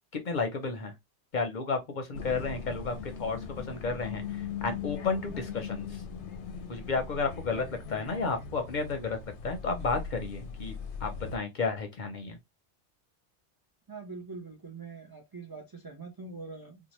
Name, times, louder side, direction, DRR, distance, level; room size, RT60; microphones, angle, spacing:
voice 1, 0.1-0.9 1.3-6.0 6.7-9.2 9.4-10.7 11.0-12.4, left 4 dB, 50° left, 0.6 m, -32 dB
sound 1, 2.1-11.4, left 6 dB, 85° left, 0.9 m, -39 dB
voice 2, 13.9-16.8, right 4 dB, 40° right, 0.3 m, -43 dB
2.8 x 2.1 x 3.0 m
omnidirectional pair, 1.2 m